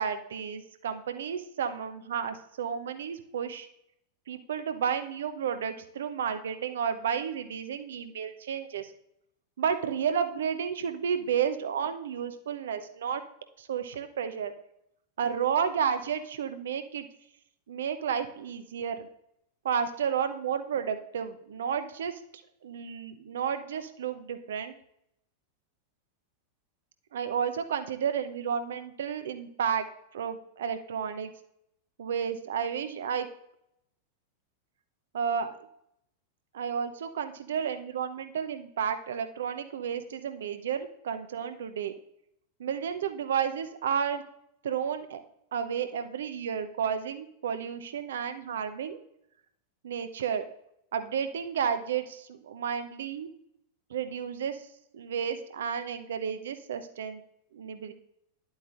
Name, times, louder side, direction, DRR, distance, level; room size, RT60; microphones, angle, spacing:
voice 1, 0.0-3.7 4.3-8.9 9.6-13.2 13.6-14.5 15.2-17.1 17.7-19.1 19.6-22.2 22.6-24.7 27.1-29.8 30.1-31.3 32.0-33.3 35.1-35.5 36.5-41.9 42.6-44.2 44.6-45.2 45.5-49.0 49.8-50.4 50.9-53.3 53.9-54.6 54.9-57.2 57.5-57.9, right 7 dB, 60° right, 9 dB, 0.7 m, -32 dB
11.0 x 8.0 x 2.5 m, 0.76 s
figure-of-eight pair, 90°, 0 cm